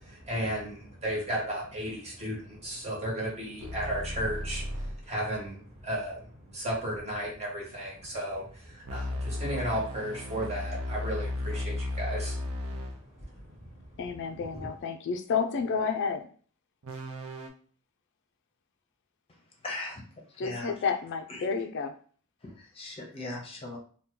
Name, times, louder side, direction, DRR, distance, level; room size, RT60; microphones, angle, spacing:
voice 1, 0.0-14.0 14.5-14.7, equal, 30° right, -3 dB, 1.2 m, -35 dB
sound 1, 3.6-5.0 8.8-13.0 16.8-17.5, left 1 dB, 65° right, 0.6 m, -35 dB
voice 2, 14.0-16.3 20.4-21.9, left 5 dB, 55° left, 5 dB, 0.3 m, -30 dB
voice 3, 19.6-20.0 20.4-20.7 21.3-21.4 22.4-23.8, left 2 dB, 25° left, 0 dB, 0.7 m, -38 dB
2.8 x 2.2 x 3.7 m, 0.44 s
head